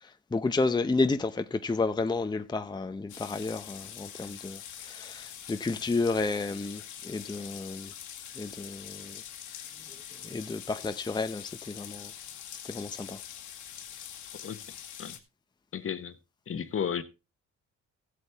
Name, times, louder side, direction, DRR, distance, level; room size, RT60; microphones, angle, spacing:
voice 1, 0.0-7.9 8.4-9.2 10.2-12.1 12.6-13.2, left 3 dB, 15° left, 0.7 m, -31 dB
sound 1, 3.1-15.2, left 9 dB, 80° left, 1.9 m, -44 dB
voice 2, 14.4-15.1 15.7-16.1 16.5-17.0, left 8 dB, 45° left, 1.2 m, -34 dB
15.5 x 8.1 x 3.5 m
cardioid pair, 90°, 30 cm